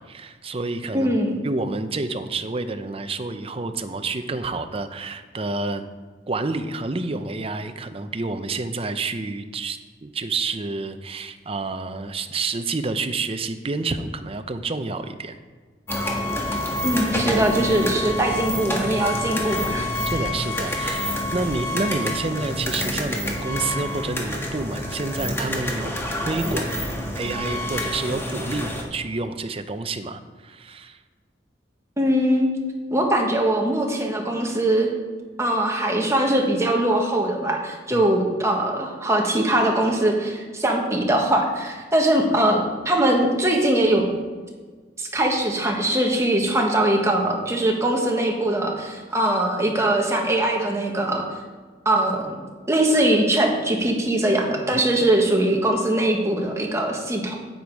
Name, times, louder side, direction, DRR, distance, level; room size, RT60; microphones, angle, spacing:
voice 1, 0.0-1.2 1.4-5.9 6.3-15.4 20.1-26.0 26.3-26.7 27.2-31.0 37.9-38.0 54.7-54.8, right 3 dB, 35° right, 9 dB, 0.6 m, -29 dB
voice 2, 0.9-1.4 16.8-19.9 32.0-32.5 32.9-34.9 35.4-44.1 45.0-51.2 51.8-52.3 52.7-57.3, right 1 dB, 15° right, 1 dB, 1.4 m, -21 dB
sound 1, 15.9-28.8, left 1 dB, 15° left, 1.5 m, -27 dB
9.3 x 8.8 x 4.7 m, 1.5 s
head